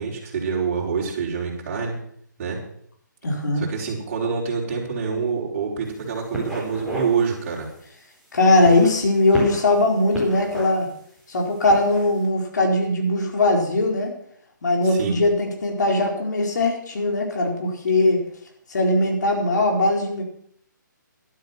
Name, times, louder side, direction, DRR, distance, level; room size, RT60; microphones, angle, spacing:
voice 1, 0.0-1.9 2.4-2.6 3.6-7.7 14.8-15.2, right 5 dB, 40° right, -3 dB, 5.1 m, -26 dB
voice 2, 3.2-3.6 8.3-10.9 11.3-14.1 14.6-18.2 18.7-20.2, left 2 dB, 60° left, 1 dB, 4.4 m, -20 dB
sound 1, 5.8-6.1 6.3-7.1 7.5-7.7 8.5-9.7 10.1-10.9 11.6-12.0, right 1 dB, ahead, 4.3 m, -32 dB
12.0 x 12.0 x 6.1 m, 0.65 s
hypercardioid pair, 155°, 11 cm